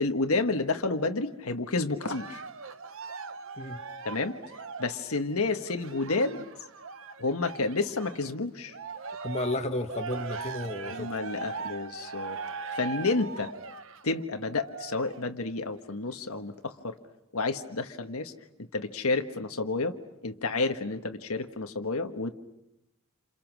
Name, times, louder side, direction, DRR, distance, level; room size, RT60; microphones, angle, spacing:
voice 1, 0.0-2.4 4.0-4.4 4.8-6.5 7.2-8.8 10.8-12.4 12.7-13.5 14.0-17.0 17.3-18.3 18.7-20.0 20.2-22.3, left 3 dB, 75° left, 6 dB, 1.5 m, -30 dB
Cheering, 2.0-8.3 8.7-15.3 15.9-16.0, right 4 dB, 65° right, 1.0 m, -40 dB
voice 2, 9.2-11.1, left 1 dB, 30° left, 4 dB, 1.7 m, -32 dB
29.0 x 28.0 x 6.2 m, 0.88 s
head